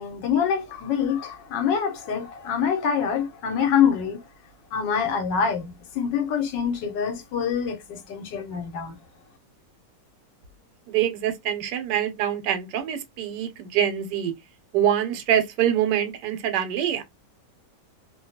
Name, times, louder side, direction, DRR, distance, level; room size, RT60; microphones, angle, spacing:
voice 1, 0.0-4.2 4.7-9.0, left 7 dB, 80° left, 1.3 m, -25 dB
voice 2, 10.9-14.3 14.7-17.0, right 10 dB, 80° right, 1.2 m, -25 dB
2.9 x 2.2 x 2.7 m
omnidirectional pair, 1.9 m